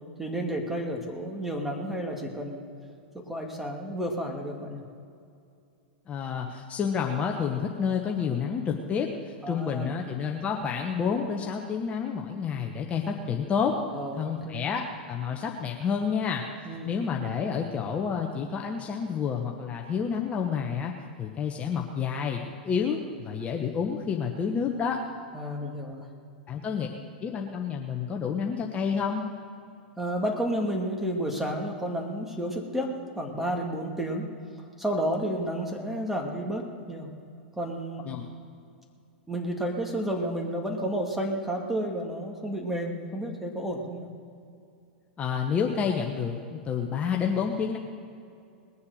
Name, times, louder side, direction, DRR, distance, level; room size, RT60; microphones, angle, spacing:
voice 1, 0.2-2.7 3.1-4.8 9.4-10.0 13.9-14.7 16.6-16.9 25.3-26.1 30.0-34.3 34.8-37.1 37.5-38.1 39.3-44.1, right 1 dB, 5° right, 1 dB, 2.2 m, -31 dB
voice 2, 6.1-13.7 14.2-16.4 16.8-20.9 21.2-25.0 26.5-26.9 27.2-29.3 38.0-38.2 45.2-47.8, left 6 dB, 25° left, 1 dB, 1.1 m, -29 dB
20.5 x 7.1 x 6.5 m, 2.5 s
hypercardioid pair, 105°, 5 cm